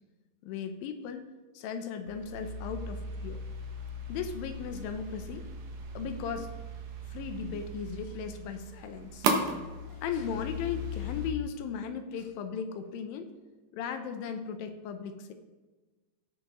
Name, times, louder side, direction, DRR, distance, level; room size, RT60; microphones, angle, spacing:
voice 1, 0.4-1.3 1.5-3.4 4.1-5.5 5.9-6.5 7.1-9.3 9.9-13.3 13.7-15.3, left 6 dB, 80° left, 8 dB, 2.5 m, -37 dB
sound 1, 2.1-11.3, right 1 dB, 65° right, 2.3 m, -37 dB
17.0 x 6.3 x 3.0 m, 1.2 s
omnidirectional pair, 4.1 m